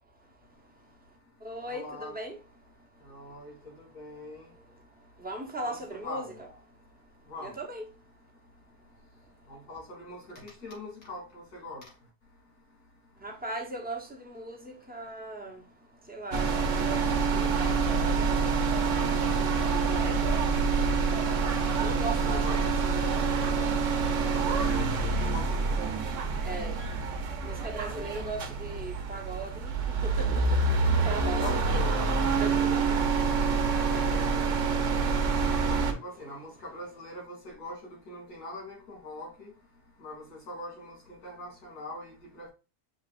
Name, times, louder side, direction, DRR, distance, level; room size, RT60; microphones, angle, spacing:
voice 1, 0.0-1.1 1.4-2.4 3.0-3.3 3.6-3.8 4.1-6.3 7.4-7.8 13.2-24.3 26.4-30.7 31.0-31.6 32.3-33.1 33.7-34.2, right 2 dB, 10° right, 0.4 m, -40 dB
voice 2, 1.7-2.2 3.0-3.5 3.8-4.5 5.7-6.4 7.3-7.5 9.5-11.8 22.4-22.6 24.3-25.8 30.7-31.9 34.0-34.5 35.7-37.8 38.1-39.5 40.0-42.5, left 2 dB, 80° left, 2.9 m, -42 dB
sound 1, 16.3-35.9, right 4 dB, 60° right, 1.0 m, -27 dB
6.5 x 3.0 x 2.4 m
omnidirectional pair, 1.6 m